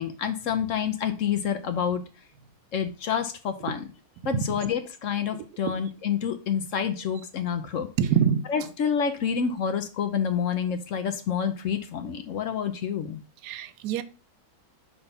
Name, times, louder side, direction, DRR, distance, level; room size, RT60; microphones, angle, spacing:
voice 1, 0.0-2.0 2.7-3.8 4.2-7.9 8.5-13.2, left 7 dB, 65° left, 8 dB, 0.9 m, -28 dB
voice 2, 8.0-8.4 13.4-14.0, right 8 dB, 85° right, 13 dB, 1.2 m, -24 dB
5.6 x 3.5 x 5.2 m, 0.33 s
omnidirectional pair, 1.7 m